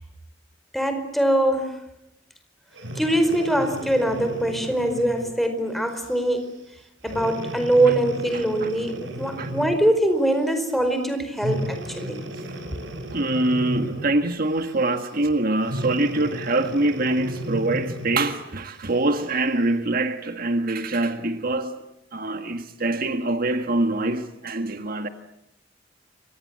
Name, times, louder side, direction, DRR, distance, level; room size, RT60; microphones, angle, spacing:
voice 1, 0.7-1.8 2.9-6.5 7.0-12.2, right 1 dB, ahead, 4.8 m, -23 dB
Breathing, 2.7-5.4 6.0-6.2 7.0-9.9 11.3-14.2 15.6-18.3 19.0-19.1, right 1 dB, 85° right, 5.6 m, -34 dB
voice 2, 8.3-8.7 9.4-9.5 12.4-12.5 13.1-21.8 22.1-25.1, right 2 dB, 50° right, 1.7 m, -24 dB
29.5 x 25.5 x 7.6 m
head